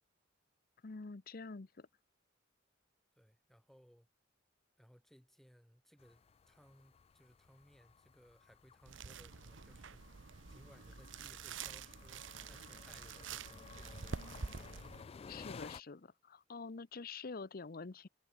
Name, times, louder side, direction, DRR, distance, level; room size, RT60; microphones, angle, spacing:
voice 1, 0.8-1.9 15.3-18.1, left 4 dB, 50° left, 0.7 m, -47 dB
voice 2, 3.2-4.1 4.8-10.0 10.5-14.5, equal, ahead, 3.9 m, -64 dB
sound 1, 6.0-15.8, left 5 dB, 30° left, 0.3 m, -55 dB
sound 2, 8.9-15.0, right 5 dB, 85° right, 0.9 m, -47 dB
head